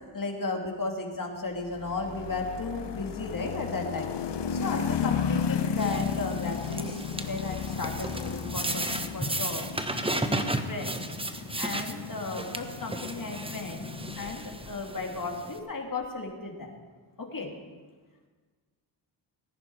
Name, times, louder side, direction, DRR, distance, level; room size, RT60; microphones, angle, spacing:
voice 1, 0.1-4.1 4.5-9.6 10.1-11.1 11.6-13.9 14.2-16.7 17.2-17.5, left 3 dB, 40° left, 1 dB, 2.7 m, -35 dB
sound 1, 1.6-14.8, left 7 dB, 55° left, 0.9 m, -34 dB
sound 2, 5.7-15.6, right 2 dB, 10° right, 1.1 m, -35 dB
19.0 x 10.5 x 4.8 m, 1.4 s
cardioid pair, 60°, 49 cm